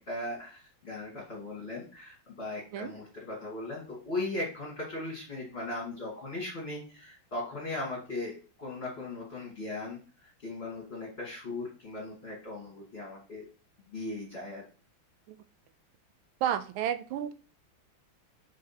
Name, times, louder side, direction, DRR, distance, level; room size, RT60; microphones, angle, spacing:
voice 1, 0.0-13.4 13.9-14.6, left 2 dB, 30° left, -5 dB, 2.3 m, -38 dB
voice 2, 16.4-17.3, right 10 dB, 85° right, 12 dB, 1.5 m, -31 dB
5.2 x 3.9 x 5.8 m, 0.38 s
omnidirectional pair, 2.2 m